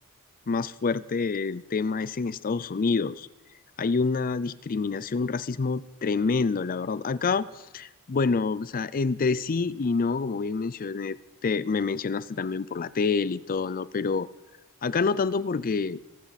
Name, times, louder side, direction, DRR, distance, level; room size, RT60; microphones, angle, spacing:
voice 1, 0.5-3.3 3.8-7.5 7.7-11.2 11.4-14.3 14.8-16.0, left 4 dB, 40° left, 18 dB, 0.4 m, -27 dB
26.5 x 12.0 x 4.1 m, 1.1 s
head